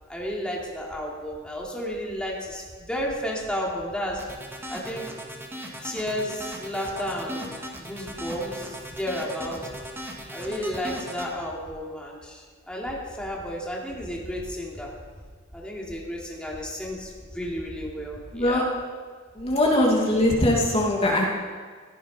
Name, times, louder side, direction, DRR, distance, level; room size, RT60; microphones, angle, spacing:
voice 1, 0.1-4.2 4.7-5.0 5.8-7.5 7.8-9.6 10.3-14.9 15.5-18.6, equal, 5° left, -3 dB, 2.8 m, -32 dB
sound 1, 4.2-11.3, equal, 10° right, 2.0 m, -37 dB
voice 2, 18.3-18.6 19.4-21.3, left 1 dB, 30° left, -2 dB, 2.5 m, -21 dB
17.5 x 14.0 x 5.6 m, 1.5 s
head